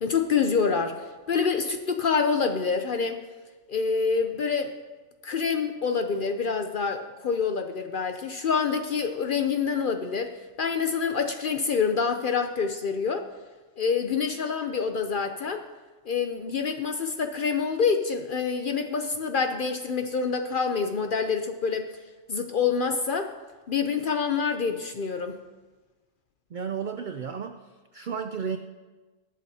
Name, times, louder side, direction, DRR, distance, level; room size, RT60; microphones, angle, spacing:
voice 1, 0.0-3.2 3.7-4.7 5.2-13.3 13.8-15.6 16.1-21.9 22.3-23.3 23.7-25.4, left 5 dB, 55° left, 6 dB, 0.6 m, -26 dB
voice 2, 26.5-28.6, right 6 dB, 80° right, 7 dB, 0.4 m, -33 dB
20.0 x 7.6 x 2.8 m, 1.3 s
omnidirectional pair, 1.4 m